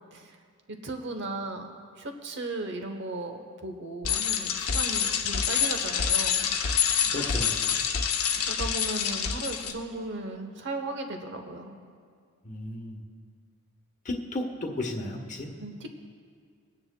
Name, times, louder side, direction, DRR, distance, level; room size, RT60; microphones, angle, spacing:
voice 1, 0.8-6.5 8.5-11.8 15.6-15.9, right 2 dB, 55° right, 5 dB, 1.0 m, -36 dB
Bicycle, 4.0-9.7, left 7 dB, 80° left, 0.8 m, -27 dB
voice 2, 7.1-7.5 12.4-13.0 14.0-15.5, left 1 dB, 35° left, 2 dB, 1.1 m, -33 dB
24.0 x 9.6 x 2.2 m, 2.1 s
head